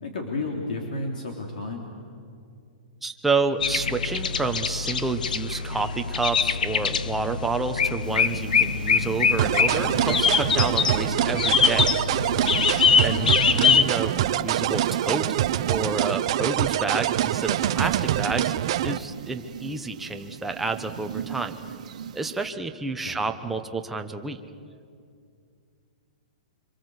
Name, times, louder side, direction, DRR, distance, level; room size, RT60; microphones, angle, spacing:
voice 1, 0.0-1.8 13.1-13.4 23.0-23.2, left 2 dB, 70° left, 1 dB, 3.6 m, -32 dB
voice 2, 3.0-11.9 13.0-15.3 15.7-18.5 18.8-21.5 22.1-24.4, right 3 dB, 5° right, 5 dB, 0.9 m, -29 dB
sound 1, 3.6-13.8, left 6 dB, 85° left, 1.1 m, -23 dB
sound 2, 8.0-22.5, right 8 dB, 55° right, 1.5 m, -39 dB
sound 3, 9.4-19.0, right 12 dB, 40° right, 0.7 m, -25 dB
26.0 x 26.0 x 8.1 m, 2.4 s
hypercardioid pair, 170°, 4 cm